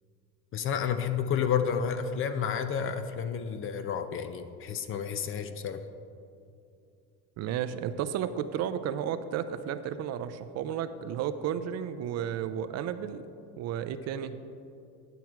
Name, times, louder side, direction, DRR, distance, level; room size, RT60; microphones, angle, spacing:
voice 1, 0.5-5.8, left 7 dB, 35° left, 10 dB, 0.5 m, -30 dB
voice 2, 7.4-13.3 13.6-14.4, right 9 dB, 50° right, 11 dB, 0.5 m, -33 dB
11.0 x 6.0 x 4.6 m, 2.6 s
cardioid pair, 120°, 35 cm